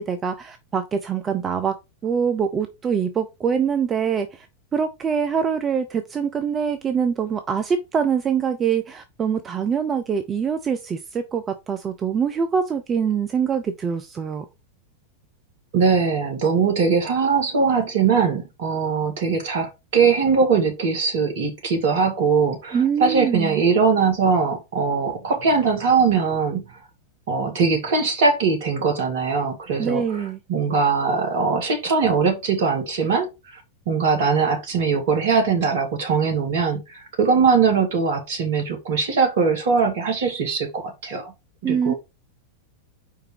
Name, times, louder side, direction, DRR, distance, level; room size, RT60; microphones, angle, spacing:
voice 1, 0.0-1.7 2.0-4.5 4.7-14.5 22.7-23.6 29.8-30.4 41.6-41.9, right 7 dB, 20° right, 0.6 m, -24 dB
voice 2, 15.7-26.6 27.3-30.2 30.5-41.3 41.6-41.9, right 5 dB, 55° right, 2.0 m, -21 dB
4.9 x 4.7 x 4.6 m
figure-of-eight pair, 90°, 0 cm